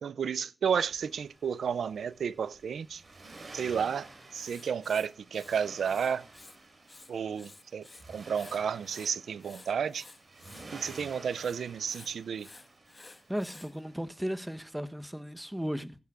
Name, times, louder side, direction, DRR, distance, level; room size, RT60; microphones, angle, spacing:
voice 1, 0.0-3.0 3.5-4.1 4.3-6.3 7.1-10.1 10.7-12.5, right 7 dB, 90° right, 0.4 m, -32 dB
Accelerating revving vroom, 0.7-14.7, right 2 dB, 60° right, 4.4 m, -52 dB
Writing, 4.3-6.6 6.8-8.0 8.3-13.7, left 2 dB, 40° left, 1.5 m, -53 dB
voice 2, 13.3-16.0, equal, 10° right, 1.1 m, -35 dB
16.0 x 10.5 x 2.4 m
cardioid pair, 40°, 0 cm